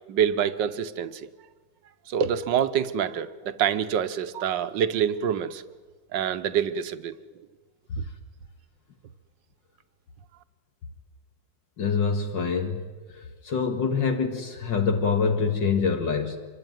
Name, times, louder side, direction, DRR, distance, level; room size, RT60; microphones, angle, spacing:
voice 1, 0.1-1.3 2.1-5.6 6.1-7.1, right 8 dB, 75° right, 11 dB, 1.7 m, -26 dB
voice 2, 11.8-12.8 13.1-16.4, left 5 dB, 75° left, 4 dB, 2.6 m, -25 dB
26.0 x 24.5 x 9.3 m, 1.4 s
omnidirectional pair, 2.0 m